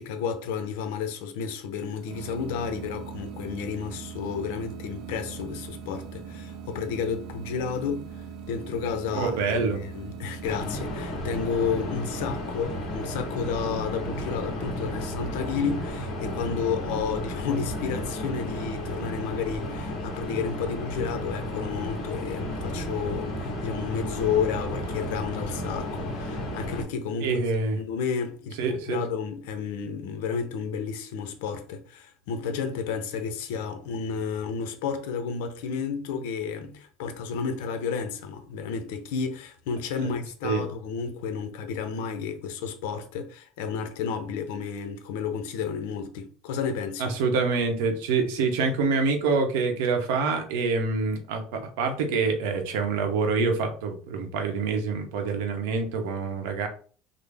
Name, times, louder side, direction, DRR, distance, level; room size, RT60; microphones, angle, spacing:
voice 1, 0.0-8.1 8.5-9.3 9.7-27.5 27.8-47.1, left 6 dB, 80° left, 0.6 m, -31 dB
sound 1, 1.8-10.8, right 6 dB, 45° right, 0.5 m, -40 dB
voice 2, 9.1-9.8 27.2-27.8 28.6-29.0 40.0-40.1 40.4-40.6 47.0-56.7, right 4 dB, 80° right, 0.8 m, -26 dB
sound 2, 10.4-26.8, left 1 dB, 45° left, 1.4 m, -33 dB
3.7 x 2.0 x 3.4 m
cardioid pair, 165°, 0 cm